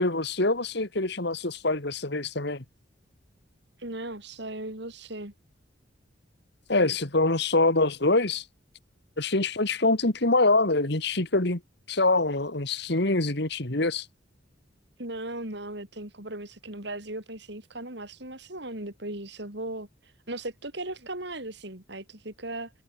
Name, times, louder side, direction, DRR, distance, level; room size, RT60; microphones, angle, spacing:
voice 1, 0.0-2.6 6.7-8.4 9.2-11.6 11.9-14.1, left 2 dB, 60° left, 2.2 m, -25 dB
voice 2, 3.8-5.3 15.0-19.9 20.3-22.7, right 1 dB, 60° right, 5.5 m, -37 dB
head